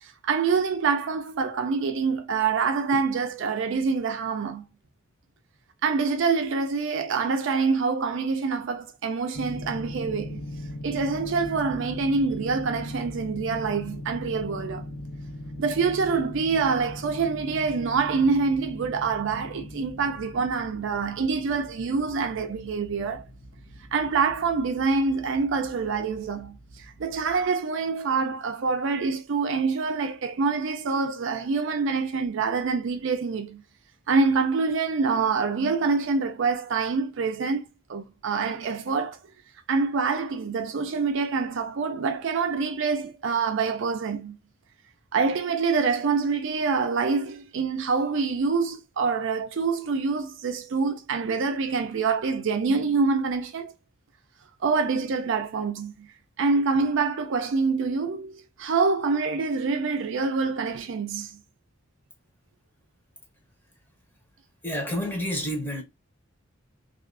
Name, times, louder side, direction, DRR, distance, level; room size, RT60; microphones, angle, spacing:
voice 1, 0.0-4.6 5.8-10.4 10.8-14.9 15.6-23.2 23.9-33.6 34.1-39.2 39.7-44.4 45.1-53.7 54.6-56.1 56.4-61.4, right 4 dB, 65° right, 0.4 m, -26 dB
sound 1, 9.3-27.5, left 1 dB, 80° left, 0.8 m, -40 dB
voice 2, 64.6-65.8, equal, 10° left, 0.8 m, -29 dB
2.4 x 2.3 x 2.4 m
head